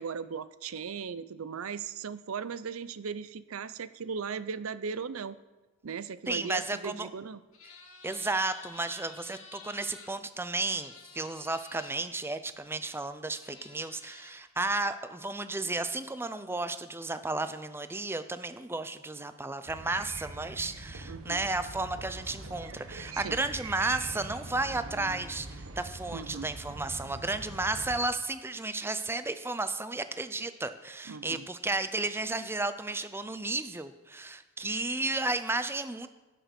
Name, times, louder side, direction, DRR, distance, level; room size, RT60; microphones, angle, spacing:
voice 1, 0.0-5.4 5.8-7.4 21.1-21.4 23.1-23.4 26.1-26.5 31.1-31.5, right 6 dB, 85° right, 15 dB, 0.6 m, -37 dB
voice 2, 6.3-7.1 8.0-36.1, right 2 dB, 10° right, 11 dB, 0.5 m, -33 dB
sound 1, 7.5-10.1 10.7-11.9 13.0-13.1 13.4-14.4, left 4 dB, 85° left, 2.3 m, -51 dB
sound 2, 19.7-28.0, right 2 dB, 70° right, 1.3 m, -43 dB
17.0 x 6.8 x 6.0 m, 1.2 s
head